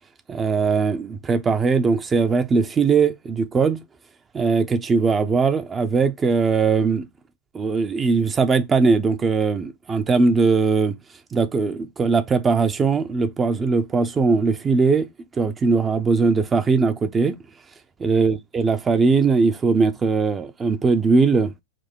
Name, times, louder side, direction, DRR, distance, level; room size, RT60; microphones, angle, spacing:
voice 1, 0.3-3.8 4.3-7.1 7.5-11.0 11.3-15.1 15.3-17.4 18.0-21.6, right 4 dB, 20° right, 0.5 m, -20 dB
4.9 x 2.0 x 3.6 m
figure-of-eight pair, 90°, 0 cm